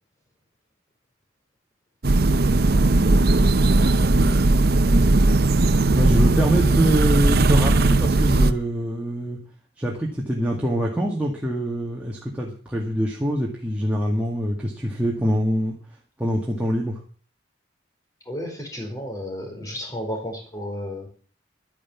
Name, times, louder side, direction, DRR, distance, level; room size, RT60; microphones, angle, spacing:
sound 1, 2.0-8.5, right 2 dB, 50° right, 0.8 m, -18 dB
voice 1, 5.9-9.4 9.8-15.7 16.2-17.0, equal, 5° right, -2 dB, 2.0 m, -24 dB
voice 2, 18.3-21.1, equal, 15° left, 2 dB, 4.5 m, -32 dB
12.0 x 10.0 x 7.2 m, 0.43 s
head